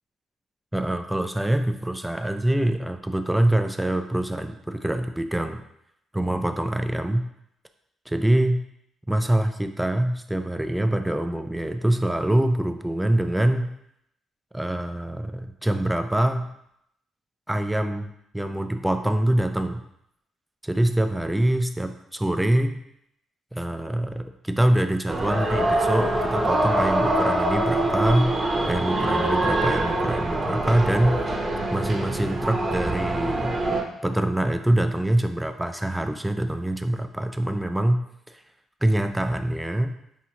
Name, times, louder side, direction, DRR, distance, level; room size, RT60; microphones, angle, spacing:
voice 1, 0.7-5.6 6.1-7.2 8.1-8.6 9.1-13.7 14.5-16.5 17.5-19.8 20.6-22.8 23.5-28.3 28.7-31.2 31.7-33.5 34.0-38.0 38.3-38.4 38.8-40.0, right 1 dB, 5° right, 8 dB, 0.3 m, -24 dB
sound 1, 25.1-33.8, right 1 dB, 30° right, 0.8 m, -24 dB
5.7 x 2.6 x 2.8 m, 0.77 s
cardioid pair, 90°, 0 cm